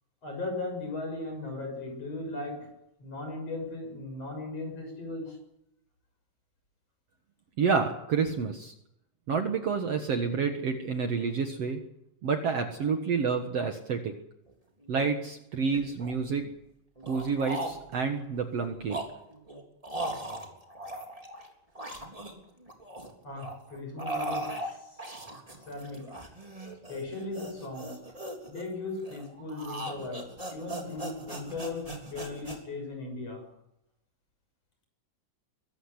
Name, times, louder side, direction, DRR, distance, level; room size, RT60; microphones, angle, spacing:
voice 1, 0.2-5.4 23.2-25.1 25.7-26.1 26.9-28.0 28.5-33.5, left 2 dB, 45° left, 4 dB, 7.5 m, -37 dB
voice 2, 7.6-8.7 9.3-11.8 12.2-14.1 14.9-16.5 17.1-19.0, right 5 dB, 55° right, 6 dB, 2.3 m, -29 dB
sound 1, 14.5-14.6 14.8-15.1 15.7-16.5 17.0-18.1 18.6-21.5 21.7-23.1 23.4-32.6, right 1 dB, 10° right, 3.3 m, -39 dB
23.5 x 14.5 x 9.9 m, 0.81 s
omnidirectional pair, 3.9 m